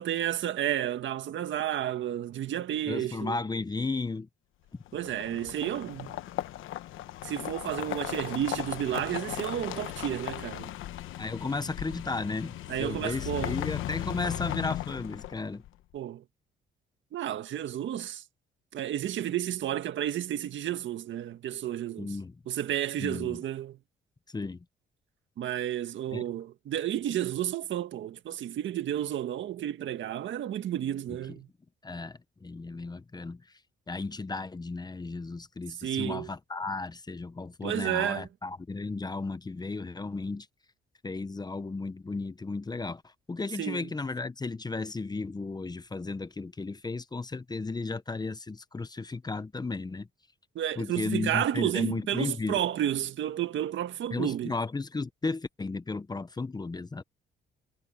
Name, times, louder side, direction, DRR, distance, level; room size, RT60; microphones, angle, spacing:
voice 1, 0.0-3.4 4.9-6.2 7.2-10.7 12.7-13.6 15.9-16.2 17.1-18.2 18.7-22.1 22.5-23.8 25.4-31.5 35.8-36.3 37.6-38.3 43.6-43.9 50.6-54.5, right 11 dB, 70° right, 1.7 m, -31 dB
voice 2, 2.9-4.3 4.7-4.8 11.2-15.6 22.0-22.4 23.0-23.4 24.3-24.6 26.1-26.2 31.8-33.4 33.9-40.5 41.0-50.1 50.8-52.6 54.1-57.0, left 3 dB, 20° left, 0.9 m, -34 dB
sound 1, 4.9-15.7, left 14 dB, 85° left, 1.1 m, -37 dB
cardioid pair, 90°, 20 cm